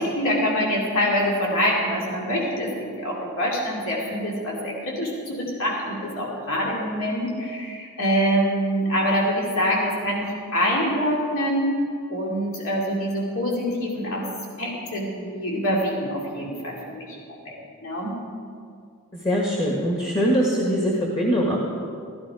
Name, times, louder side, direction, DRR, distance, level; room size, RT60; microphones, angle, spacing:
voice 1, 0.0-2.7 3.0-11.7 12.1-14.3 14.6-17.1 17.4-17.5 17.8-18.2, equal, 70° left, -3 dB, 2.7 m, -25 dB
voice 2, 19.1-21.6, equal, 25° left, -2 dB, 1.7 m, -22 dB
14.0 x 14.0 x 4.9 m, 2.3 s
head